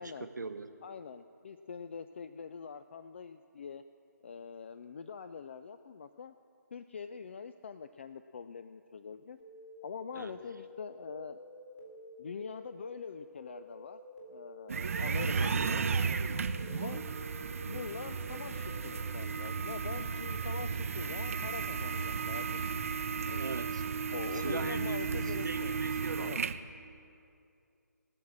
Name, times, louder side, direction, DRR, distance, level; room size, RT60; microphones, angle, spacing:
voice 1, 0.0-0.7 10.1-10.3 23.3-23.8 24.3-26.5, right 3 dB, 80° right, 8 dB, 1.0 m, -40 dB
voice 2, 0.8-3.8 4.2-6.3 6.7-9.4 9.8-11.4 12.2-14.0 14.3-15.9 16.7-17.0 17.6-22.7 23.2-23.5 24.1-25.8 26.2-26.4, left 6 dB, 40° left, 11 dB, 0.4 m, -44 dB
sound 1, 9.4-18.9, left 1 dB, 60° left, 3.8 m, -50 dB
sound 2, 14.7-26.6, right 5 dB, 50° right, 0.6 m, -34 dB
18.5 x 6.4 x 7.2 m, 2.6 s
figure-of-eight pair, 160°, 10 cm